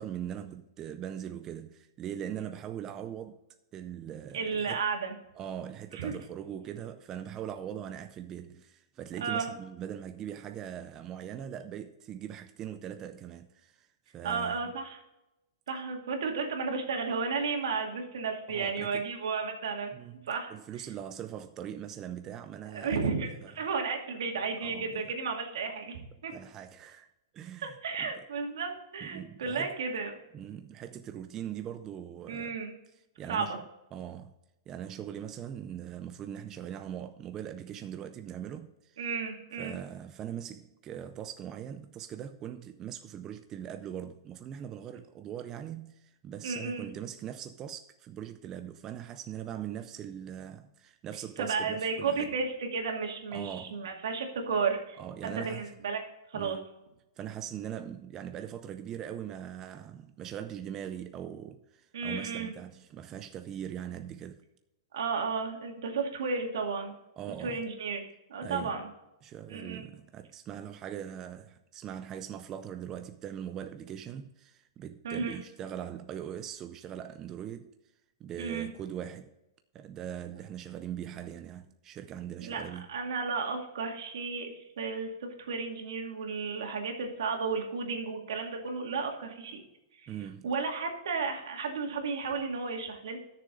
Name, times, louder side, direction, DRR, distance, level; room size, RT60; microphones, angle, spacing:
voice 1, 0.0-3.4 3.7-4.8 5.4-13.9 14.1-14.6 18.5-19.1 19.9-23.1 23.4-23.5 24.6-25.0 26.3-27.1 27.3-28.1 29.0-29.7 30.3-32.5 33.2-33.6 33.9-34.4 34.7-39.0 39.6-52.3 53.3-53.8 55.0-55.7 56.3-56.7 57.2-64.4 67.2-67.6 68.4-68.9 69.2-77.7 78.2-79.3 79.7-82.9 90.1-90.5, right 9 dB, 20° right, 0.4 m, -41 dB
voice 2, 4.3-5.2 5.9-6.1 9.2-9.5 14.2-15.0 15.7-19.9 20.3-20.5 22.7-23.3 23.6-26.3 27.6-30.1 32.3-32.7 33.3-33.6 39.0-39.8 46.4-46.9 51.4-56.0 56.3-56.6 61.9-62.5 64.9-66.9 67.4-68.9 69.5-69.8 75.0-75.4 78.4-78.7 82.4-85.1 85.4-89.6 90.0-90.1 90.4-93.2, right 5 dB, 80° right, 2.3 m, -33 dB
13.0 x 6.8 x 3.9 m
supercardioid pair, 170°, 2 cm